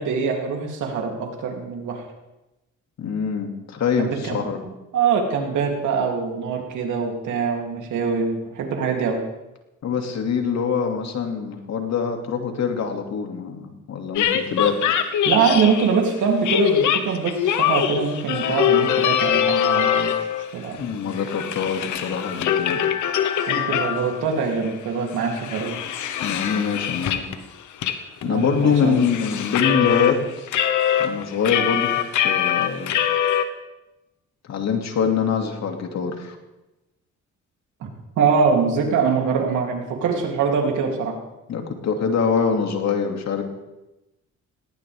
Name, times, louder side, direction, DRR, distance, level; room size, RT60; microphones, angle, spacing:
voice 1, 0.0-2.0 4.0-9.2 15.2-20.3 20.5-20.8 23.5-25.8 28.2-29.0 38.2-41.1, right 5 dB, 80° right, 1 dB, 3.2 m, -23 dB
voice 2, 3.0-4.6 9.8-14.8 20.8-22.8 26.2-27.3 28.2-30.5 31.0-31.9 32.2-33.0 34.5-36.4 41.5-43.4, left 6 dB, 60° left, 4 dB, 2.6 m, -24 dB
sound 1, 14.2-16.0 16.4-20.5 20.8-24.3 24.6-24.7 25.1-27.4 27.8-28.0 28.2-30.1 30.5-33.4, left 9 dB, 80° left, 1.3 m, -23 dB
18.5 x 18.0 x 3.6 m, 0.98 s
cardioid pair, 90°, 30 cm